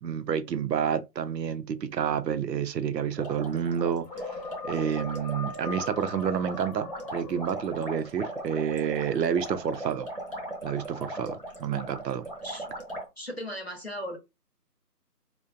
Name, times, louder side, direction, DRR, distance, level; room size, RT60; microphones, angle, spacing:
voice 1, 0.0-4.1 4.6-10.1 10.6-12.3, right 8 dB, 85° right, 0.6 m, -29 dB
sound 1, 3.1-13.1, right 1 dB, 35° right, 0.5 m, -39 dB
sound 2, 4.0-8.1, left 5 dB, 75° left, 0.7 m, -42 dB
voice 2, 13.2-14.2, equal, 40° left, 0.5 m, -36 dB
2.4 x 2.1 x 2.5 m
figure-of-eight pair, 170°, 49 cm